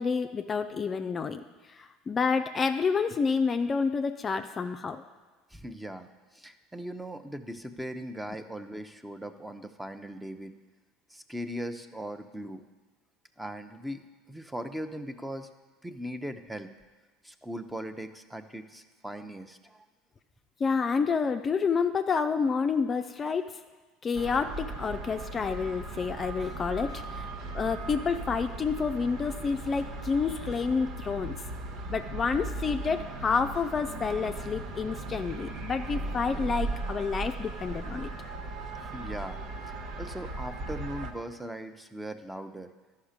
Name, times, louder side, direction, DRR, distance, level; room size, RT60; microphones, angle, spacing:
voice 1, 0.0-5.0 20.6-23.5 24.0-27.3 27.5-31.4 31.9-38.1, left 5 dB, 30° left, 7 dB, 0.5 m, -29 dB
voice 2, 5.5-6.1 6.3-10.5 11.1-12.6 13.4-15.5 15.8-16.7 17.2-19.8 38.8-42.7, equal, 5° right, 9 dB, 0.7 m, -39 dB
sound 1, 24.1-41.1, right 2 dB, 60° right, 1.0 m, -37 dB
12.5 x 5.6 x 5.1 m, 1.3 s
hypercardioid pair, 80°, 0 cm